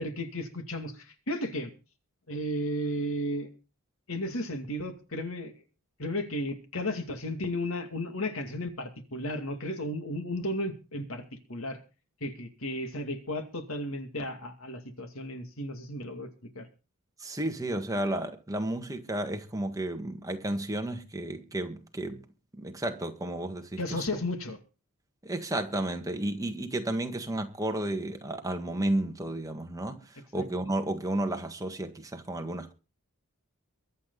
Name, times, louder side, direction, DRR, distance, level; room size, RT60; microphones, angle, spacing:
voice 1, 0.0-1.7 2.3-3.5 4.1-5.5 6.0-11.8 12.2-16.3 16.5-16.7 23.8-24.6 30.3-30.5, left 1 dB, 65° left, 2.3 m, -34 dB
voice 2, 17.2-22.2 22.5-24.0 25.2-32.7, right 1 dB, 15° right, 1.7 m, -32 dB
23.0 x 8.4 x 4.0 m
head